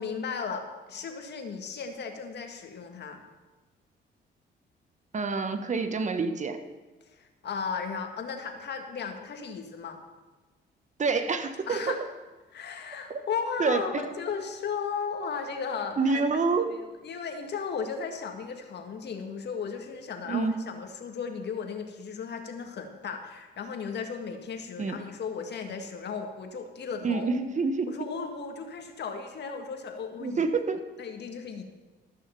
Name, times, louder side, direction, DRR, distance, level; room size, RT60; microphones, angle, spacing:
voice 1, 0.0-3.2 7.2-10.0 11.7-12.0 12.5-16.4 16.7-27.3 27.9-30.4 31.0-31.6, left 6 dB, 60° left, 5 dB, 1.9 m, -35 dB
voice 2, 5.1-6.6 11.0-12.0 13.1-13.2 13.6-14.0 16.0-16.7 20.3-20.6 24.8-25.0 27.0-28.1 30.2-30.8, right 4 dB, 35° right, 8 dB, 1.3 m, -27 dB
14.0 x 6.6 x 6.9 m, 1.2 s
cardioid pair, 90°, 20 cm